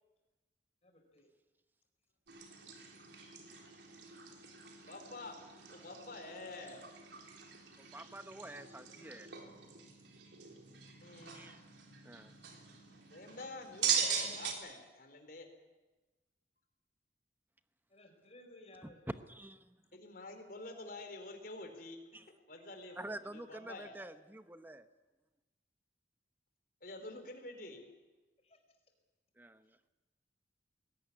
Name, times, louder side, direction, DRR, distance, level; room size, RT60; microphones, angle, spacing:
voice 1, 0.8-1.3 8.8-9.6 17.9-19.0 28.4-28.6, left 1 dB, 35° left, 5 dB, 4.6 m, -59 dB
sound 1, 2.3-14.5, right 7 dB, 85° right, 3.7 m, -41 dB
voice 2, 4.8-5.4 5.7-6.8 11.0-11.5 13.1-15.5 19.9-24.0 26.8-27.8, left 2 dB, 55° left, 5 dB, 4.1 m, -48 dB
voice 3, 7.8-9.3 11.3-11.6 12.0-12.3 18.8-19.8 22.1-22.3 23.0-24.8 29.4-29.9, right 1 dB, 10° right, 10 dB, 0.9 m, -47 dB
20.5 x 18.0 x 9.8 m, 1.2 s
head